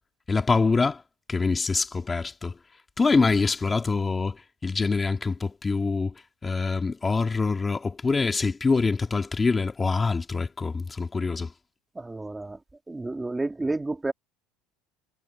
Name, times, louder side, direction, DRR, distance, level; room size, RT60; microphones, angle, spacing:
voice 1, 0.3-1.0 1.3-2.6 3.0-6.1 6.4-11.5, left 4 dB, 15° left, 2.2 m, -25 dB
voice 2, 12.0-12.6 12.9-14.1, right 2 dB, 10° right, 1.9 m, -30 dB
cardioid pair, 150°, 0 cm